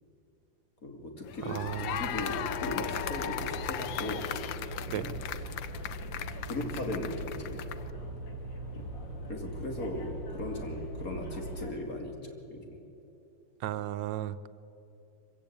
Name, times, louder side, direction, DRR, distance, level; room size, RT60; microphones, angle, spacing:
voice 1, 0.8-4.4 4.8-5.2 6.4-7.7 8.7-8.8 9.3-12.8, left 1 dB, 50° left, 2 dB, 3.0 m, -38 dB
sound 1, 1.2-7.9, left 10 dB, 90° left, 1.5 m, -37 dB
voice 2, 1.5-2.0 4.9-5.1 13.6-14.5, right 12 dB, 85° right, 13 dB, 1.4 m, -34 dB
sound 2, 1.6-11.7, right 1 dB, 75° left, 3.2 m, -41 dB
24.5 x 15.5 x 8.6 m, 3.0 s
omnidirectional pair, 2.0 m